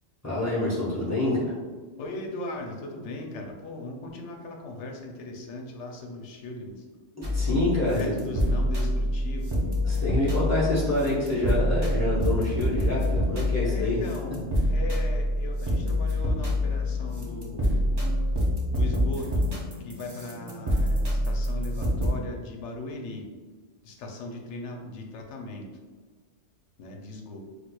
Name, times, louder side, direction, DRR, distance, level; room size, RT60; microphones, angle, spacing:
voice 1, 0.2-1.5 7.1-8.1 9.8-14.0, left 1 dB, 15° left, -7 dB, 0.7 m, -27 dB
voice 2, 2.0-6.8 7.8-9.5 10.3-11.1 13.6-17.9 18.7-23.3 23.8-25.7 26.8-27.4, left 2 dB, 75° left, 2 dB, 0.9 m, -38 dB
sound 1, 7.2-22.1, left 1 dB, 35° right, 0.4 m, -26 dB
4.3 x 2.5 x 2.2 m, 1.4 s
omnidirectional pair, 1.2 m